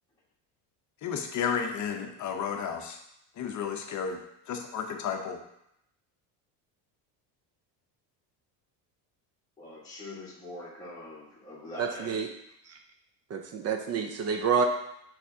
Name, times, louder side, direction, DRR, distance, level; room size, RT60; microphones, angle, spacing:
voice 1, 1.0-3.0 3.4-4.2 4.5-5.4, left 7 dB, 40° left, 4 dB, 0.7 m, -32 dB
voice 2, 9.6-12.2, left 1 dB, 10° left, -8 dB, 1.4 m, -43 dB
voice 3, 11.8-12.3 12.7-12.8 13.3-14.6, right 6 dB, 35° right, 4 dB, 0.5 m, -28 dB
5.7 x 3.4 x 2.7 m, 0.79 s
supercardioid pair, 110°, 47 cm